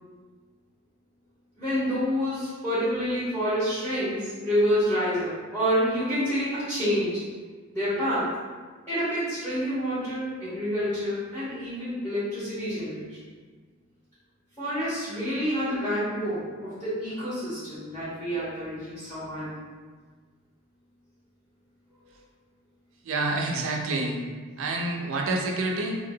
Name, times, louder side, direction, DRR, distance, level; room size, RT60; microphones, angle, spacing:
voice 1, 1.6-7.2 7.7-8.3 8.9-13.2 14.6-19.5 22.0-22.1, equal, 10° left, -13 dB, 0.9 m, -28 dB
voice 2, 23.0-24.2 24.6-26.0, right 2 dB, 65° right, 1 dB, 0.4 m, -28 dB
2.8 x 2.7 x 2.7 m, 1.5 s
head